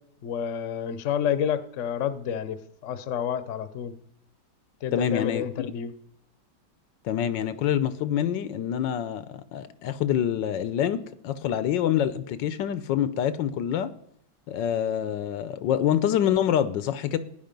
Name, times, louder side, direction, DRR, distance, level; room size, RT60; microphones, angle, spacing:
voice 1, 0.2-3.9 4.8-5.9, left 8 dB, 50° left, 13 dB, 1.0 m, -29 dB
voice 2, 4.9-5.4 7.0-13.9 14.5-17.2, left 10 dB, 80° left, 14 dB, 1.3 m, -26 dB
15.0 x 10.0 x 5.2 m, 0.72 s
omnidirectional pair, 2.0 m